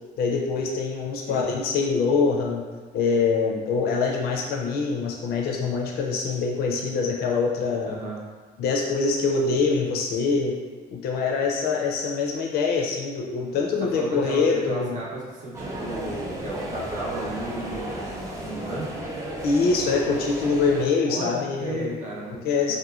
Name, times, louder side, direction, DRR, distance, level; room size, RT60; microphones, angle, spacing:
voice 1, 0.2-2.7 2.9-8.0 8.6-10.5 10.9-15.0 19.4-22.0 22.4-22.8, left 4 dB, 70° left, -1 dB, 0.5 m, -24 dB
voice 2, 7.9-8.2 13.9-19.1 21.1-22.8, right 2 dB, 45° right, -4 dB, 0.7 m, -34 dB
sound 1, 15.5-20.8, equal, 20° right, 0.5 m, -33 dB
2.9 x 2.2 x 2.4 m, 1.4 s
cardioid pair, 110°, 17 cm